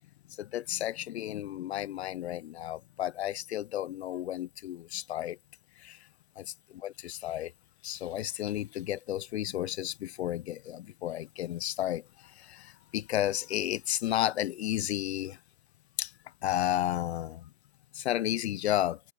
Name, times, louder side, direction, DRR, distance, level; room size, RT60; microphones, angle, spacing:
voice 1, 0.4-5.4 5.8-6.0 6.4-7.5 7.8-15.4 16.0-16.1 16.4-17.5 17.9-19.0, left 12 dB, 50° left, 0.7 m, -32 dB
hypercardioid pair, 140°, 41 cm